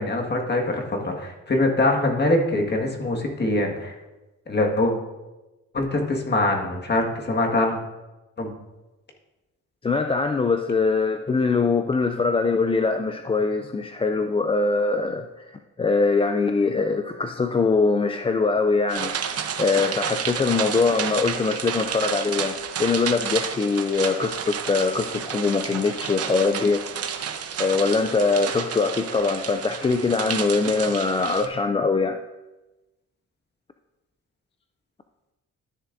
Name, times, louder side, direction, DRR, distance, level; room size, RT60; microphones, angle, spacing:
voice 1, 0.0-4.0 4.5-4.9 5.7-7.8 8.4-8.5, left 2 dB, 35° left, 1 dB, 1.8 m, -23 dB
voice 2, 9.8-26.9 27.6-32.2, left 4 dB, 20° left, 7 dB, 0.4 m, -23 dB
sound 1, 18.9-31.5, right 7 dB, 55° right, 0.9 m, -31 dB
12.5 x 7.2 x 2.6 m, 1.1 s
cardioid pair, 90°, 30 cm